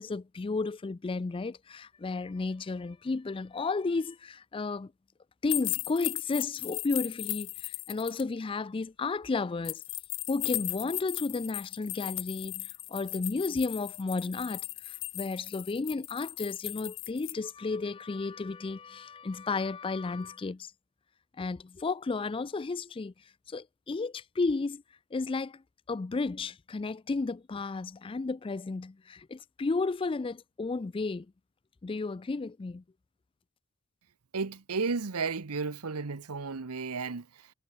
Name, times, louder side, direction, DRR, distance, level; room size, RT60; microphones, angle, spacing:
voice 1, 0.0-4.9 5.4-9.8 10.3-20.7 21.4-23.1 23.5-24.8 25.1-25.6 25.9-31.3 31.8-32.8, left 3 dB, 25° left, 0.3 m, -33 dB
sound 1, 5.5-8.2 9.6-17.3, left 18 dB, 55° left, 1.9 m, -37 dB
voice 2, 34.3-37.5, right 4 dB, 90° right, 1.0 m, -33 dB
head